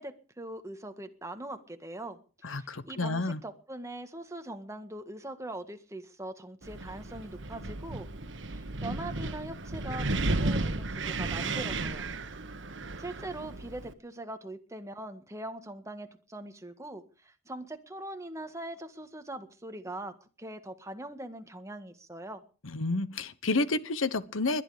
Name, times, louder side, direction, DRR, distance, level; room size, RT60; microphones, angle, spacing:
voice 1, 0.0-8.1 8.5-12.1 13.0-22.4, right 1 dB, 15° right, 1.8 m, -42 dB
voice 2, 2.4-3.4 22.6-24.6, left 3 dB, 85° left, 1.1 m, -30 dB
Wind, 6.6-13.9, right 2 dB, 65° right, 1.5 m, -34 dB
21.5 x 11.0 x 5.1 m
head